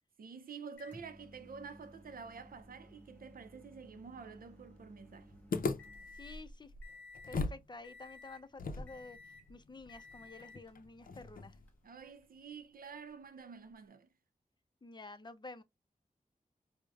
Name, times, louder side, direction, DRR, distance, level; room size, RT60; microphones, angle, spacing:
voice 1, 0.2-5.3 11.8-14.1, right 5 dB, 85° right, 0.5 m, -49 dB
Microwave oven, 0.8-6.4 6.8-7.4 7.8-8.5 8.9-9.5 9.9-10.7 11.7-11.8 13.8-13.9, left 2 dB, 10° left, 1.6 m, -56 dB
sound 1, 5.5-7.7 7.9-8.0 8.6-11.7, left 3 dB, 75° left, 0.5 m, -40 dB
voice 2, 6.1-6.7 7.3-11.6 14.8-15.6, left 3 dB, 30° left, 0.5 m, -51 dB
4.7 x 2.1 x 2.3 m
wide cardioid pair, 90°, 15 cm